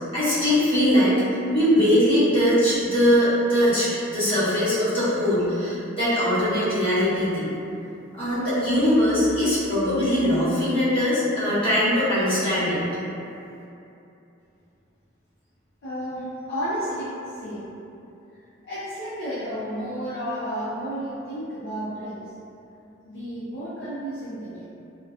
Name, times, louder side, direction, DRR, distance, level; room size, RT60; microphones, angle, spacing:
voice 1, 0.1-1.1 1.5-7.5 8.1-12.8, equal, 25° left, -13 dB, 0.9 m, -21 dB
voice 2, 15.8-17.8 18.3-22.3 23.1-24.7, equal, 55° left, -11 dB, 0.4 m, -32 dB
2.6 x 2.1 x 2.3 m, 2.7 s
head